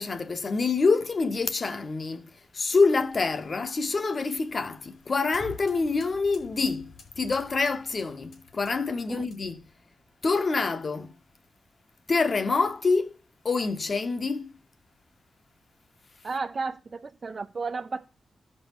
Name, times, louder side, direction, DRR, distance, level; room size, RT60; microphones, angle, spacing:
voice 1, 0.0-9.6 10.2-11.1 12.1-13.2 13.4-14.5, left 4 dB, 35° left, 0.8 m, -26 dB
sound 1, 3.0-9.7, left 4 dB, 85° left, 3.3 m, -50 dB
voice 2, 16.2-18.1, right 4 dB, 35° right, 0.4 m, -33 dB
15.5 x 5.4 x 2.9 m
wide cardioid pair, 180°, 0 cm